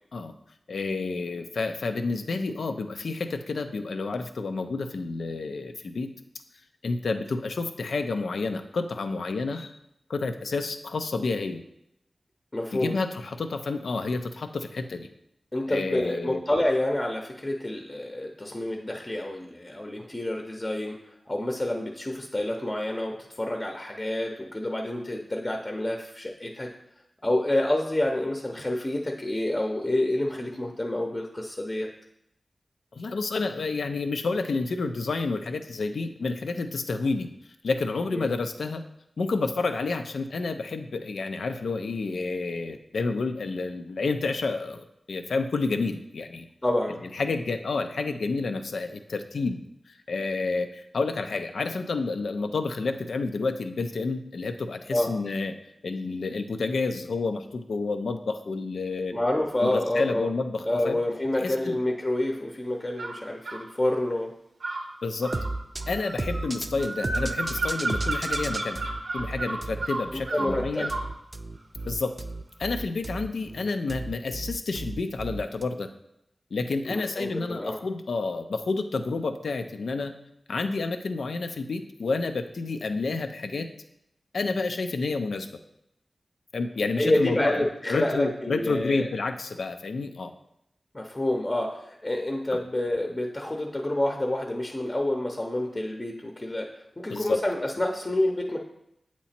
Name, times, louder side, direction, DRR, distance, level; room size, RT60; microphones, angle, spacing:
voice 1, 0.7-6.1 6.8-9.7 10.1-11.6 12.7-15.1 15.7-16.4 32.9-37.3 37.6-38.8 39.2-46.5 47.1-49.6 49.9-55.6 55.8-59.2 59.6-61.0 61.4-61.8 65.0-65.3 65.9-68.8 69.1-70.9 71.9-72.1 72.6-75.9 76.5-80.1 80.5-83.7 84.3-85.5 86.5-87.6 87.9-90.3 97.1-97.4, left 3 dB, 90° left, 7 dB, 0.4 m, -29 dB
voice 2, 12.5-12.9 15.5-21.0 21.3-26.7 27.2-31.9 38.1-38.3 46.6-47.1 54.9-55.1 59.1-60.3 60.6-64.3 70.1-70.9 76.9-77.8 87.0-89.1 90.9-98.6, left 1 dB, 30° left, 1 dB, 0.7 m, -28 dB
sound 1, 63.0-63.7 64.6-71.1, right 2 dB, 90° right, 0.7 m, -32 dB
sound 2, 65.3-75.6, right 2 dB, 40° right, 0.4 m, -34 dB
8.1 x 3.0 x 4.3 m, 0.81 s
wide cardioid pair, 55°, 0 cm